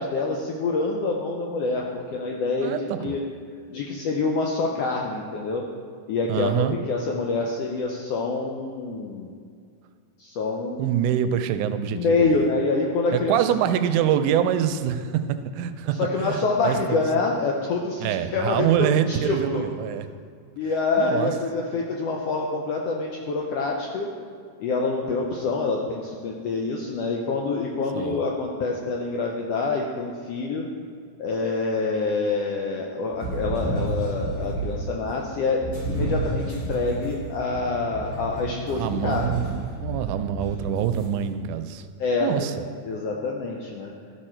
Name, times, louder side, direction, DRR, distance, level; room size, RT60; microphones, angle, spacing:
voice 1, 0.0-3.2 3.7-5.6 6.1-9.3 10.2-10.9 11.3-11.4 11.9-13.4 16.0-19.7 20.6-24.1 24.6-30.6 31.2-39.3 42.0-42.5 42.8-43.9, left 3 dB, 85° left, 0 dB, 1.3 m, -26 dB
voice 2, 2.6-3.2 6.3-6.8 10.8-12.5 13.1-17.0 18.0-20.1 21.0-21.3 27.9-28.2 38.7-41.9 42.2-42.5, right 9 dB, 85° right, 10 dB, 2.0 m, -25 dB
sound 1, 33.1-34.9 35.6-41.0, right 2 dB, 60° left, 3.5 m, -30 dB
13.0 x 5.1 x 4.4 m, 2.1 s
omnidirectional pair, 3.6 m